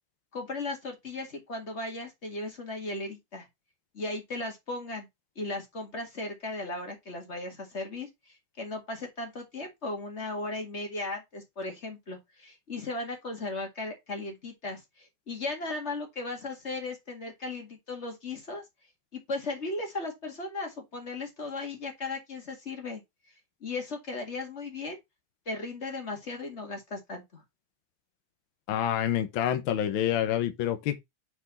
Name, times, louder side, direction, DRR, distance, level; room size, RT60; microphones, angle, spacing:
voice 1, 0.3-3.5 3.9-5.1 5.3-18.6 19.1-23.0 23.6-25.0 25.4-27.4, left 2 dB, 25° left, 1.7 m, -36 dB
voice 2, 28.7-31.0, left 10 dB, 85° left, 1.1 m, -27 dB
6.3 x 4.8 x 4.0 m
omnidirectional pair, 3.5 m